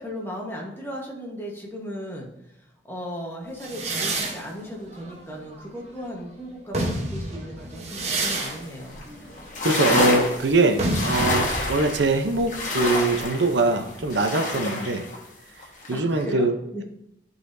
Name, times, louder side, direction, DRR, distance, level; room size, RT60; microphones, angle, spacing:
voice 1, 0.0-2.3 2.6-9.0 15.9-16.5 16.7-16.8, equal, 10° left, -1 dB, 1.2 m, -36 dB
sound 1, 3.6-6.1 6.5-14.0, right 2 dB, 40° right, 1.0 m, -31 dB
sound 2, 8.3-8.7 9.0-9.1 9.4-15.2 15.6-16.0, left 2 dB, 45° left, 1.2 m, -27 dB
voice 2, 9.6-15.0 15.9-16.5, right 2 dB, 85° right, 6 dB, 0.7 m, -22 dB
11.0 x 4.1 x 2.7 m, 0.81 s
head